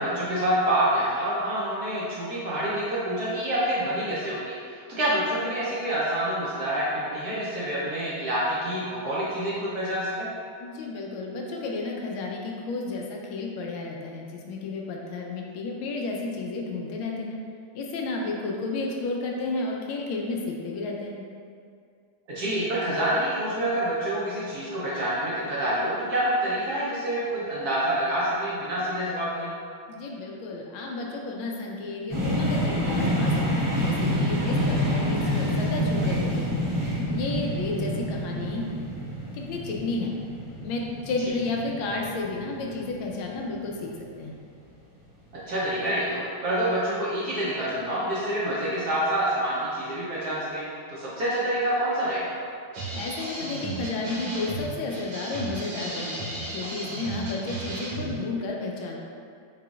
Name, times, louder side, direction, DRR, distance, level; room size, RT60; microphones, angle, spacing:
voice 1, 0.0-10.3 22.3-29.5 45.5-50.6 50.9-52.3, right 1 dB, 60° right, -8 dB, 1.1 m, -27 dB
voice 2, 10.6-17.4 17.7-21.2 29.9-36.5 37.1-38.6 39.3-40.1 40.6-44.4 52.9-59.0, left 3 dB, 80° left, 0 dB, 1.3 m, -32 dB
sound 1, 32.1-43.9, equal, 25° right, 0.4 m, -27 dB
sound 2, 52.7-58.3, right 2 dB, 80° right, 1.6 m, -35 dB
4.9 x 3.8 x 2.3 m, 2.2 s
omnidirectional pair, 2.3 m